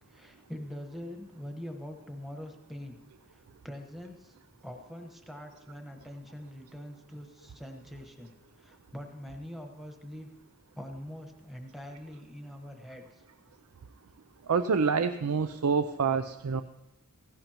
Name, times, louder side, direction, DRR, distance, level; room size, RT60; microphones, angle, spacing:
voice 1, 0.1-3.0 3.3-4.4 4.6-8.3 8.6-10.3 10.8-13.1, equal, ahead, 3 dB, 1.2 m, -43 dB
voice 2, 14.5-16.6, right 5 dB, 85° right, 11 dB, 0.5 m, -27 dB
17.0 x 16.0 x 3.0 m, 0.93 s
head